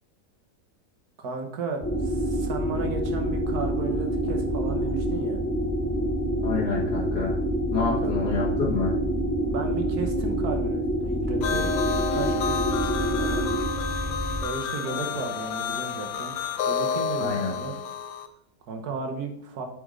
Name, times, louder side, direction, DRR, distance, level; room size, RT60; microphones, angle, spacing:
voice 1, 1.2-5.4 7.8-8.1 9.4-11.7 12.1-13.4 14.4-16.3 16.7-17.7 18.6-19.7, right 4 dB, 65° right, 4 dB, 1.6 m, -34 dB
sound 1, 1.8-14.4, right 1 dB, 20° left, 0.4 m, -27 dB
voice 2, 6.4-7.4 7.7-8.9 17.2-17.5, left 4 dB, 55° left, -7 dB, 2.3 m, -28 dB
sound 2, 11.4-18.3, left 6 dB, 80° left, 1.3 m, -30 dB
8.3 x 5.3 x 3.7 m, 0.70 s
omnidirectional pair, 1.8 m